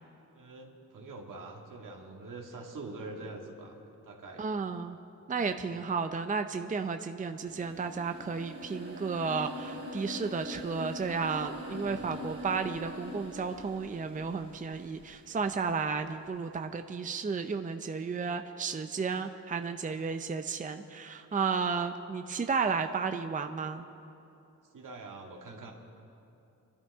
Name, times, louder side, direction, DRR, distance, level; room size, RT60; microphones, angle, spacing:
voice 1, 0.3-3.8 4.0-4.4 5.7-5.8 11.8-12.2 24.7-25.7, right 3 dB, 75° right, 0 dB, 2.0 m, -45 dB
voice 2, 4.4-5.0 5.3-23.8, right 5 dB, 25° right, 7 dB, 0.6 m, -33 dB
sound 1, 7.4-15.4, equal, 45° right, 3.6 m, -43 dB
25.5 x 12.5 x 3.6 m, 2.8 s
cardioid pair, 90°, 32 cm